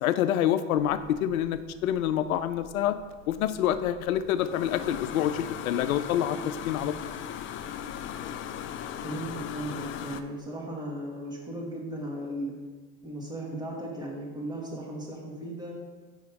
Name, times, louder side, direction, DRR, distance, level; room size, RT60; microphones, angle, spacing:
voice 1, 0.0-3.0 3.3-6.9, left 11 dB, 80° left, 12 dB, 0.6 m, -27 dB
sound 1, 0.8-10.2, left 9 dB, 30° left, 0.4 m, -39 dB
voice 2, 9.0-12.5 13.0-15.7, right 1 dB, 10° right, -2 dB, 2.1 m, -36 dB
5.8 x 5.4 x 4.8 m, 1.3 s
hypercardioid pair, 85°, 41 cm